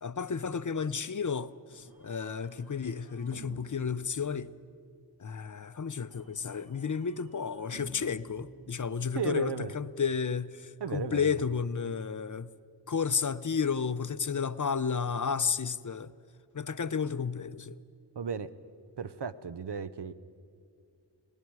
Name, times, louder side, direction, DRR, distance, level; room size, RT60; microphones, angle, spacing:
voice 1, 0.0-4.5 5.2-12.5 12.9-16.1 16.5-17.8, left 6 dB, 45° left, 0.6 m, -32 dB
sound 1, 1.7-5.0 6.1-9.3, right 1 dB, 55° right, 2.4 m, -53 dB
voice 2, 9.1-9.7 10.8-11.4 18.2-18.5 19.0-20.1, right 6 dB, 70° right, 0.8 m, -35 dB
30.0 x 20.0 x 4.7 m
wide cardioid pair, 55°, 42 cm